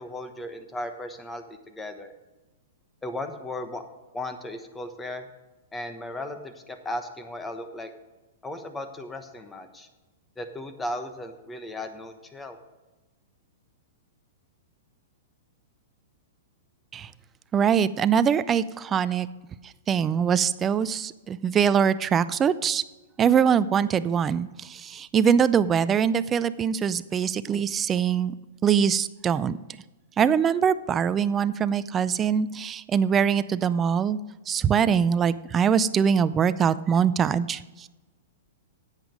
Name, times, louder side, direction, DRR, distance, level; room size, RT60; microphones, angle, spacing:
voice 1, 0.0-2.1 3.0-3.8 4.1-5.3 5.7-7.9 8.4-9.9 10.4-12.6, left 1 dB, 10° left, 8 dB, 1.2 m, -36 dB
voice 2, 17.5-19.3 19.9-22.8 23.2-28.3 28.6-29.6 30.2-34.2 34.5-37.9, right 7 dB, 25° right, 16 dB, 0.5 m, -23 dB
10.5 x 8.2 x 5.2 m, 1.1 s
hypercardioid pair, 110°, 0 cm